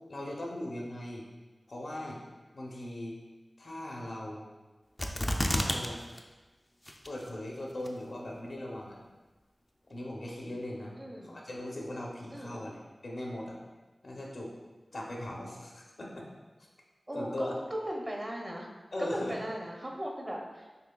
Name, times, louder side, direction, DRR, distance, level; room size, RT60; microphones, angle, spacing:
voice 1, 0.1-1.2 1.7-2.2 2.5-3.2 3.6-4.5 5.4-6.0 7.1-9.0 9.9-11.0 11.2-13.6 14.0-14.5 14.9-16.2 17.1-17.5 18.9-19.4, left 1 dB, 70° left, -2 dB, 0.7 m, -39 dB
sound 1, 5.0-5.9 6.2-6.3 6.9-7.3 7.9-8.0, left 1 dB, 20° left, 0.4 m, -29 dB
voice 2, 11.0-11.4 12.3-12.7 17.1-17.5 17.9-18.7 19.0-20.8, equal, 30° right, -1 dB, 0.7 m, -38 dB
5.5 x 3.1 x 2.3 m, 1.2 s
wide cardioid pair, 50°, 0 cm